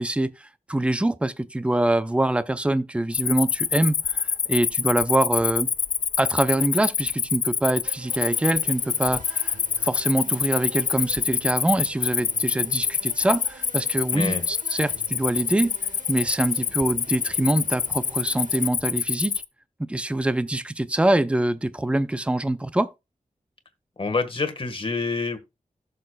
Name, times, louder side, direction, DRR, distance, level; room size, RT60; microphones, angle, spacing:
voice 1, 0.0-5.7 6.2-9.6 9.8-15.7 16.1-19.4 19.9-22.9, right 1 dB, 10° right, 0.5 m, -24 dB
Cricket, 3.1-19.4, left 7 dB, 75° left, 0.5 m, -26 dB
sound 1, 7.8-18.7, right 4 dB, 70° right, 1.3 m, -47 dB
voice 2, 14.1-14.4 24.0-25.4, left 3 dB, 40° left, 1.5 m, -27 dB
16.5 x 6.7 x 2.3 m
wide cardioid pair, 105°, 14 cm